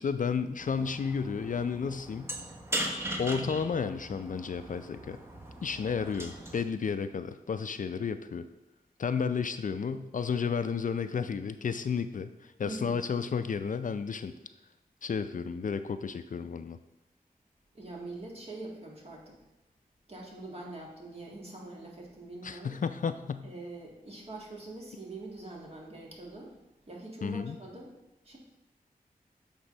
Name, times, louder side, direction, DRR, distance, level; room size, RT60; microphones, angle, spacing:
voice 1, 0.0-2.3 3.2-5.2 5.6-8.5 9.0-14.3 15.0-16.8 22.4-23.5 27.2-27.6, left 6 dB, 60° left, 10 dB, 0.4 m, -32 dB
sound 1, 0.6-6.6, right 1 dB, 15° right, 1.1 m, -39 dB
voice 2, 12.7-13.0 17.7-19.3 20.1-22.7 23.4-26.5 26.9-27.9 28.2-28.4, right 2 dB, 40° right, -2 dB, 1.9 m, -43 dB
7.9 x 3.7 x 5.4 m, 0.92 s
wide cardioid pair, 70°, 16 cm